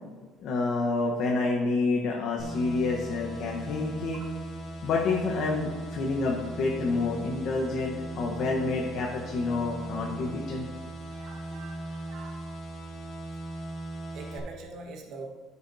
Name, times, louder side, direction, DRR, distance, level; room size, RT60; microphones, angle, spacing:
voice 1, 0.4-4.2 4.8-10.7, left 3 dB, 60° left, -1 dB, 1.1 m, -28 dB
sound 1, 2.4-14.4, right 1 dB, 45° left, 2.1 m, -38 dB
voice 2, 11.1-12.3 14.1-15.3, right 3 dB, 65° right, 0 dB, 1.5 m, -43 dB
12.5 x 7.0 x 2.8 m, 1.4 s
cardioid pair, 130°, 0 cm